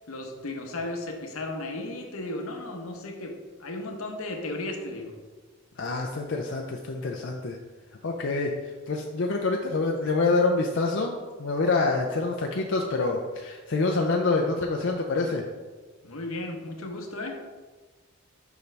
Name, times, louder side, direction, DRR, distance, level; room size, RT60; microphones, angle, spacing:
voice 1, 0.1-5.1 16.0-17.4, left 2 dB, 85° left, 3 dB, 0.9 m, -35 dB
voice 2, 5.8-7.6 8.0-15.5, left 3 dB, 60° left, 1 dB, 0.5 m, -26 dB
7.0 x 5.2 x 3.3 m, 1.3 s
head